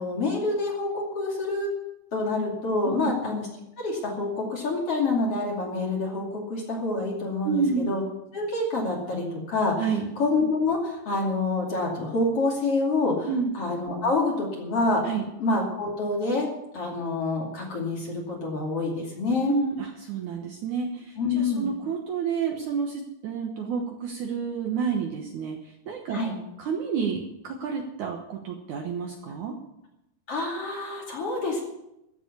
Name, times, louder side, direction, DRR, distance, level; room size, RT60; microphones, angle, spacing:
voice 1, 0.0-1.7 2.1-3.5 3.8-8.0 8.3-9.8 10.2-13.3 13.5-15.0 15.4-16.5 16.7-19.5 21.2-21.7 26.1-26.4 30.3-31.6, left 3 dB, 40° left, -1 dB, 3.2 m, -27 dB
voice 2, 7.4-7.9 9.8-10.1 13.3-13.5 15.0-15.3 19.4-26.2 26.6-29.6, right 6 dB, 65° right, 2 dB, 2.2 m, -29 dB
14.5 x 7.2 x 9.6 m, 0.87 s
omnidirectional pair, 4.6 m